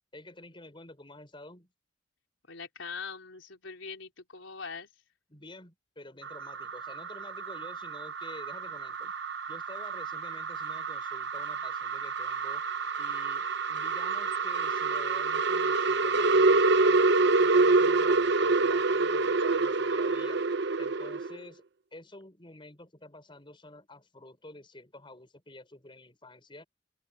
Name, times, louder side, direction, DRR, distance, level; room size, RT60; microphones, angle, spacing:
voice 1, 0.1-1.7 5.3-9.1 9.5-12.6 13.0-17.0 17.4-20.4 20.8-21.6 21.9-26.6, left 2 dB, 25° left, 5.6 m, -49 dB
voice 2, 2.5-4.9, left 5 dB, 85° left, 3.8 m, -42 dB
sound 1, 6.2-21.4, right 3 dB, 60° right, 0.9 m, -27 dB
open air
head